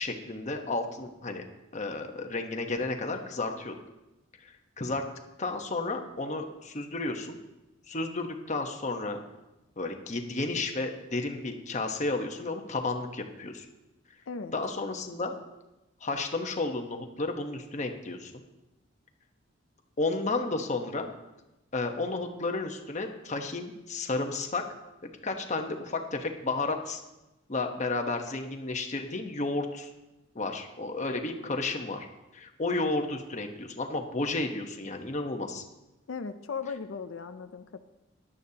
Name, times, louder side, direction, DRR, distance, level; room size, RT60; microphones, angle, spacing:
voice 1, 0.0-1.4 1.7-3.7 4.4-5.0 5.4-7.4 7.9-9.2 9.8-13.7 14.5-15.3 16.0-18.3 20.0-21.1 21.7-24.6 25.2-27.0 27.5-29.9 30.3-32.1 32.3-35.6, left 3 dB, 40° left, 4 dB, 1.1 m, -32 dB
voice 2, 36.1-37.8, left 5 dB, 90° left, 9 dB, 0.5 m, -37 dB
16.5 x 11.0 x 2.9 m, 0.99 s
head